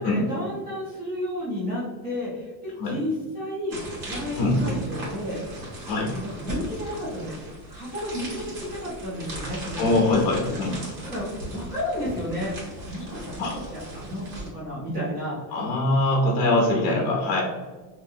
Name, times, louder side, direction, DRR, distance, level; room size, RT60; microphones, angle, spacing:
voice 1, 0.0-3.8 4.1-5.4 6.1-7.3 7.7-10.1 10.4-10.6 11.0-11.3 11.5-12.5 12.8-14.3 14.5-15.4, equal, 25° right, -9 dB, 0.4 m, -32 dB
sound 1, 3.7-14.5, right 1 dB, 70° right, 1.4 m, -37 dB
voice 2, 9.8-10.7 13.4-13.5 15.5-17.4, left 2 dB, 40° left, -2 dB, 0.6 m, -22 dB
2.7 x 2.4 x 2.6 m, 1.3 s
cardioid pair, 180°, 47 cm